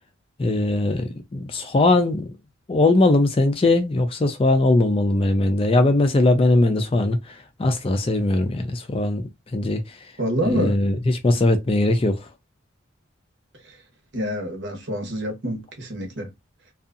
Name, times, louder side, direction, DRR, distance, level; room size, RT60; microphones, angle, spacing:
voice 1, 0.4-2.3 2.7-10.0 10.4-12.3, left 2 dB, 25° left, 0.3 m, -20 dB
voice 2, 10.2-10.8 13.6-13.8 14.1-16.3, equal, 55° right, 1.0 m, -27 dB
2.6 x 2.3 x 2.5 m
head